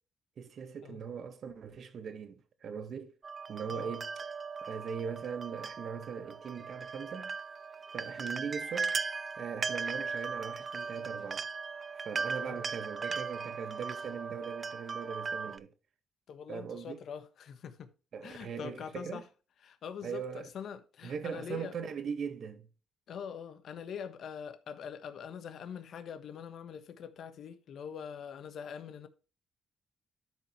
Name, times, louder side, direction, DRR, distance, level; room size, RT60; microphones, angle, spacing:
voice 1, 0.4-3.1 3.5-4.1 4.6-7.3 7.9-9.0 9.4-11.4 12.0-15.7 16.5-17.0 18.1-19.2 20.0-20.5 21.0-22.7, right 6 dB, 60° right, 1.7 m, -40 dB
sound 1, 3.2-15.6, right 5 dB, 35° right, 0.6 m, -38 dB
voice 2, 16.3-17.9 18.2-19.3 19.6-21.7 23.1-29.1, left 7 dB, 65° left, 1.3 m, -43 dB
12.5 x 5.3 x 3.2 m
cardioid pair, 90°, 0 cm